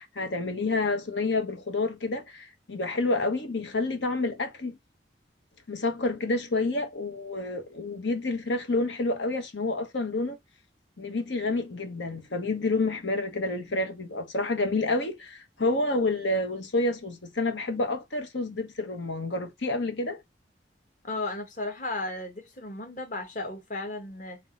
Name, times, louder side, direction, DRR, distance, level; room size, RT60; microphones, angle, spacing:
voice 1, 0.0-4.8 5.7-10.4 11.0-20.2, left 2 dB, 90° left, 1.3 m, -29 dB
voice 2, 21.0-24.4, left 2 dB, 45° left, 1.3 m, -34 dB
3.9 x 3.0 x 3.8 m
head